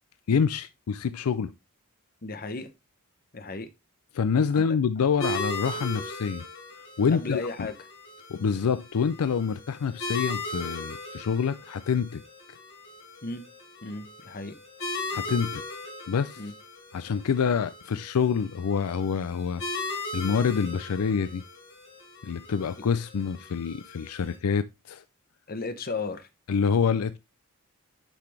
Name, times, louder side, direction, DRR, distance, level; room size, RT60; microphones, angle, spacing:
voice 1, 0.3-1.5 4.1-6.5 7.0-7.7 8.3-12.2 15.1-15.6 16.1-16.4 16.9-19.6 20.1-21.4 22.2-25.0 26.5-27.2, left 6 dB, 75° left, 0.4 m, -26 dB
voice 2, 2.2-2.7 3.3-3.7 4.5-4.6 7.1-7.7 13.2-13.4 13.8-14.6 16.4-16.5 25.5-26.3, left 3 dB, 40° left, 1.0 m, -34 dB
sound 1, 5.2-24.3, left 2 dB, 60° left, 3.8 m, -38 dB
9.0 x 5.9 x 3.3 m
head